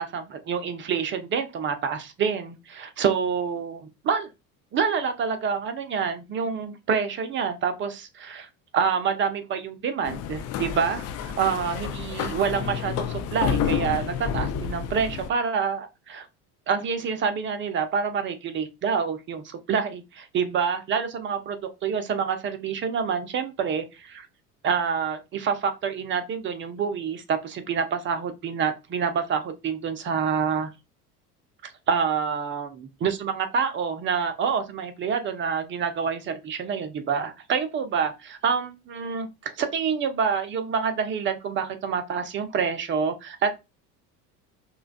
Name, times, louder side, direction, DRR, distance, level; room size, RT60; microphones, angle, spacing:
voice 1, 0.0-4.3 4.7-8.5 8.7-16.3 16.7-24.3 24.6-30.7 31.6-32.7 33.0-43.6, right 6 dB, 25° right, 0.7 m, -27 dB
sound 1, 10.0-15.3, left 8 dB, 35° left, 0.5 m, -29 dB
5.6 x 2.3 x 2.3 m
figure-of-eight pair, 70°, 46 cm